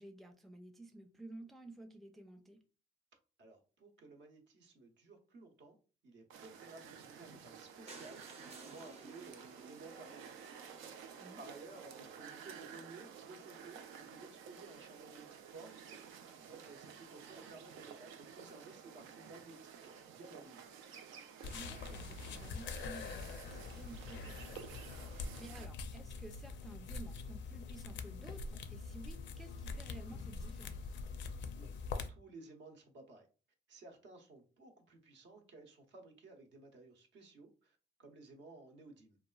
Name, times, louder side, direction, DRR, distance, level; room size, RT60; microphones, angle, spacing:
voice 1, 0.0-2.6 11.2-11.4 21.5-24.6 24.9-30.9, right 2 dB, ahead, 4 dB, 0.4 m, -53 dB
voice 2, 3.4-5.8 6.0-10.3 11.4-15.8 16.4-20.6 31.6-31.7 32.1-33.3 33.7-39.2, right 3 dB, 65° right, 3 dB, 0.8 m, -56 dB
sound 1, 6.3-25.7, right 7 dB, 90° right, 0.4 m, -53 dB
sound 2, 7.9-11.8 12.4-12.5 12.7-12.9 13.1-13.2 13.4-13.5, right 3 dB, 30° right, 0.7 m, -56 dB
sound 3, 21.4-32.1, left 4 dB, 65° left, 0.4 m, -44 dB
2.8 x 2.3 x 2.2 m, 0.36 s
cardioid pair, 90°, 20 cm